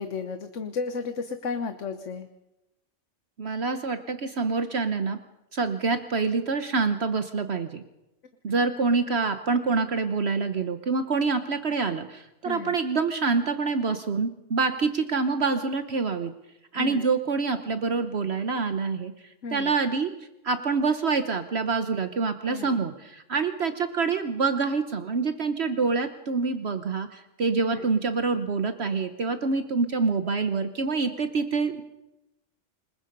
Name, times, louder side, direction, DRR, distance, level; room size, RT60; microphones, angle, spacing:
voice 1, 0.0-2.3 12.4-12.7 16.8-17.0 19.4-19.7 22.4-22.7 27.7-27.9, left 4 dB, 75° left, 9 dB, 1.4 m, -33 dB
voice 2, 3.4-5.2 5.5-7.8 8.4-16.3 16.7-19.1 19.5-20.1 20.4-31.8, right 4 dB, 60° right, 9 dB, 1.3 m, -26 dB
26.5 x 21.0 x 5.4 m, 0.93 s
omnidirectional pair, 1.3 m